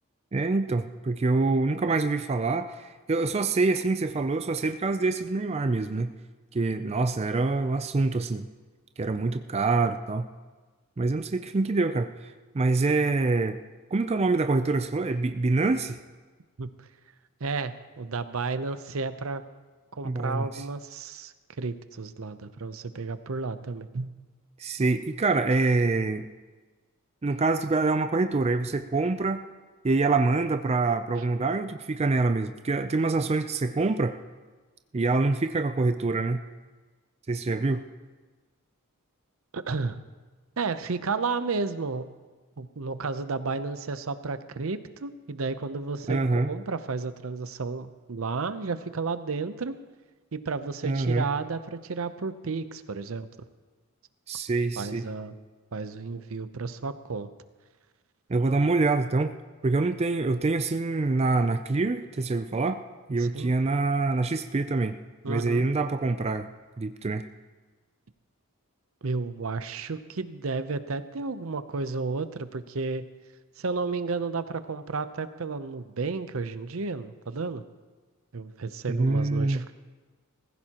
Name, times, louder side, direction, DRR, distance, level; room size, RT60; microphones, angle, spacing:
voice 1, 0.3-6.1 6.5-8.5 9.0-10.3 11.0-13.6 13.9-16.0 20.0-20.6 24.6-26.3 27.2-29.4 29.8-34.2 34.9-36.4 37.3-37.8 46.1-46.5 50.8-51.3 54.3-55.0 58.3-59.3 59.6-62.8 63.1-65.0 65.3-66.5 66.8-67.2 78.9-79.6, right 3 dB, 30° right, 8 dB, 0.4 m, -25 dB
voice 2, 17.4-19.4 19.9-24.1 39.5-40.0 40.6-42.1 42.6-49.7 50.3-53.3 54.8-55.3 55.7-57.3 63.2-63.5 65.2-65.6 69.0-73.1 73.6-77.6 78.3-79.7, right 4 dB, 70° right, 12 dB, 0.7 m, -32 dB
19.5 x 15.5 x 2.9 m, 1.3 s
head